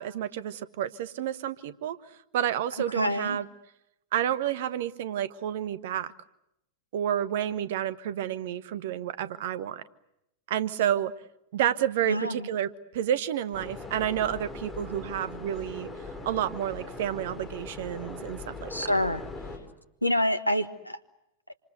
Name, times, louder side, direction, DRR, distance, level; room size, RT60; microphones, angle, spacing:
voice 1, 0.0-2.0 2.3-3.4 4.1-6.1 6.9-9.8 10.5-11.1 11.5-15.9 16.2-18.9, right 10 dB, 55° right, 15 dB, 1.2 m, -30 dB
voice 2, 2.9-3.4 12.1-12.5 18.7-19.2 20.0-21.0, left 1 dB, 85° left, 11 dB, 1.3 m, -27 dB
sound 1, 13.5-19.6, left 3 dB, 10° left, 6.7 m, -40 dB
27.5 x 26.5 x 8.0 m, 0.84 s
figure-of-eight pair, 90°, 0 cm